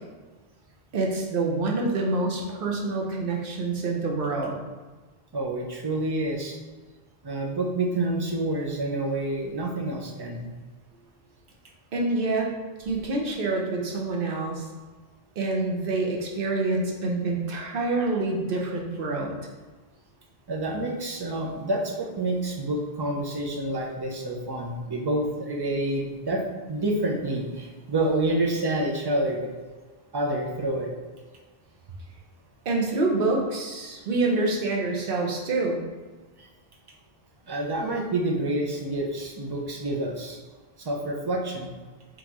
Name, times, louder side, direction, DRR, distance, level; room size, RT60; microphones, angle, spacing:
voice 1, 0.9-4.6 11.9-12.5 12.8-14.7 15.4-19.4 32.7-35.8, right 3 dB, 65° right, 0 dB, 0.9 m, -26 dB
voice 2, 5.3-6.6 7.2-10.5 20.5-26.4 26.7-29.5 30.1-30.9 36.4-36.5 37.5-40.4 40.8-41.7, right 1 dB, 30° right, 0 dB, 0.5 m, -28 dB
3.8 x 3.7 x 2.9 m, 1.3 s
omnidirectional pair, 1.0 m